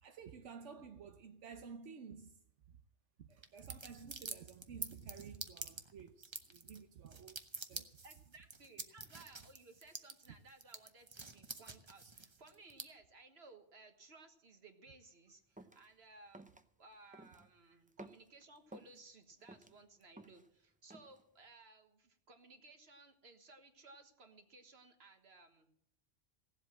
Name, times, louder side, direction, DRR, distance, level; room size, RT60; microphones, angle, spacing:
voice 1, 0.0-2.4 2.7-2.8 3.2-7.9, right 6 dB, 80° right, 1.2 m, -52 dB
sound 1, 3.4-12.8, right 3 dB, 25° right, 0.9 m, -47 dB
voice 2, 7.7-25.7, right 3 dB, 60° right, 1.7 m, -60 dB
sound 2, 15.6-15.8 16.3-16.6 17.1-17.5 17.9-19.0 19.4-20.5 20.9-21.2, right 1 dB, 10° right, 0.5 m, -55 dB
17.0 x 7.9 x 7.4 m
omnidirectional pair, 1.2 m